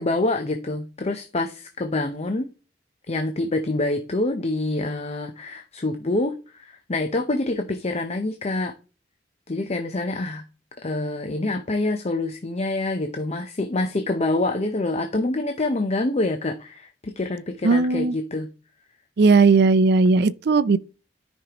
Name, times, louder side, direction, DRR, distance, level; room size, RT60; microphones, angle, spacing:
voice 1, 0.0-2.5 3.1-8.7 9.5-10.4 10.8-18.5, left 2 dB, 35° left, 0.7 m, -26 dB
voice 2, 17.6-18.1 19.2-20.8, right 4 dB, 60° right, 0.5 m, -17 dB
13.0 x 5.3 x 2.9 m
head